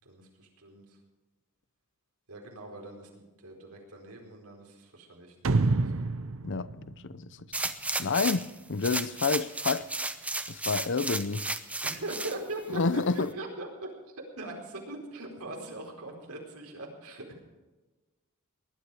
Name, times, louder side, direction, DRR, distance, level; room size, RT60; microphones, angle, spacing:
voice 1, 0.0-1.0 2.3-6.1 11.8-17.4, right 2 dB, 80° right, 4.5 m, -41 dB
sound 1, 5.4-8.0, right 3 dB, 65° right, 0.7 m, -28 dB
voice 2, 6.4-7.3 8.0-9.9 10.5-11.5 12.7-13.3, left 4 dB, 55° left, 0.7 m, -29 dB
sound 2, 7.5-8.5 8.8-12.4 12.9-13.0, right 2 dB, 5° right, 0.8 m, -33 dB
19.5 x 12.0 x 4.9 m
head